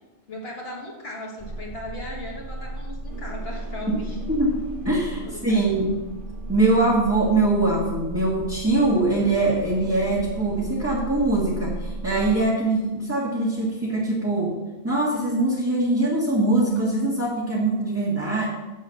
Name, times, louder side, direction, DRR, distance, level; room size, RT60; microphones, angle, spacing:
voice 1, 0.3-4.2 5.2-5.9, left 1 dB, 60° left, -3 dB, 1.8 m, -37 dB
sound 1, 1.4-12.4, right 2 dB, 50° right, 1.5 m, -35 dB
voice 2, 4.3-5.9 6.5-14.5 14.8-18.4, right 2 dB, 15° right, -6 dB, 1.6 m, -22 dB
7.3 x 6.9 x 6.6 m, 1.1 s
omnidirectional pair, 1.2 m